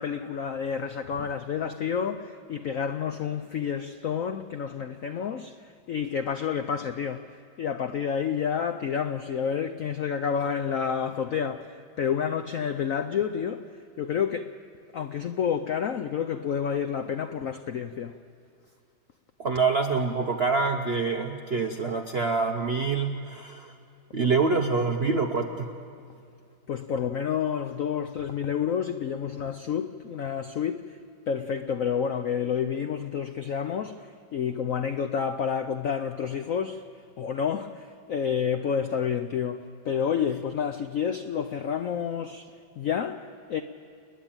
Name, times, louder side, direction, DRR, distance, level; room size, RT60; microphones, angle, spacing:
voice 1, 0.0-13.7 14.0-14.5 14.9-18.1 26.7-31.0 31.3-36.8 37.2-42.5 42.8-43.6, left 7 dB, 75° left, 8 dB, 0.7 m, -29 dB
voice 2, 19.4-23.7 24.1-25.7, right 4 dB, 55° right, 4 dB, 0.6 m, -26 dB
29.0 x 10.5 x 8.9 m, 2.5 s
omnidirectional pair, 2.2 m